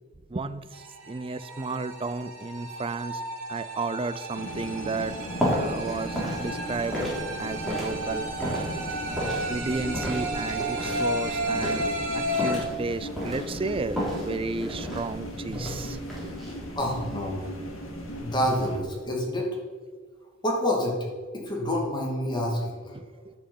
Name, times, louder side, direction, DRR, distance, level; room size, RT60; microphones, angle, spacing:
voice 1, 0.3-3.2 3.5-5.2 5.4-7.0 7.4-8.3 9.1-9.2 9.5-16.0 16.2-16.3 22.9-23.3, right 3 dB, 25° right, 13 dB, 0.5 m, -33 dB
sound 1, 0.7-12.6, right 1 dB, 70° right, 2.4 m, -33 dB
sound 2, 4.4-18.8, equal, 80° left, 2.0 m, -38 dB
sound 3, 5.0-19.0, equal, ahead, 3.5 m, -34 dB
voice 2, 16.7-17.4 18.2-19.5 20.4-21.0 21.3-22.9, left 1 dB, 20° left, -1 dB, 2.5 m, -27 dB
9.9 x 6.1 x 7.9 m, 1.4 s
head